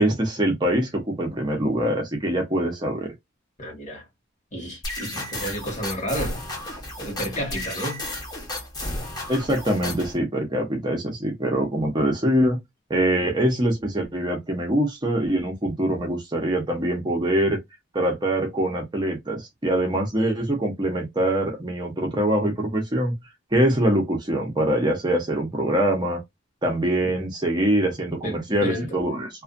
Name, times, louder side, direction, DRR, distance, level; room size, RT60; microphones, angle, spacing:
voice 1, 0.0-3.1 9.3-12.6 12.9-17.6 17.9-23.2 23.5-26.2 26.6-29.3, right 1 dB, 25° right, 0.6 m, -23 dB
voice 2, 3.6-4.1 4.5-6.4 7.0-8.0 27.0-27.2 28.2-29.0, equal, 40° left, 1.3 m, -31 dB
sound 1, 4.8-10.2, left 1 dB, 20° left, 0.9 m, -33 dB
2.5 x 2.4 x 2.4 m
head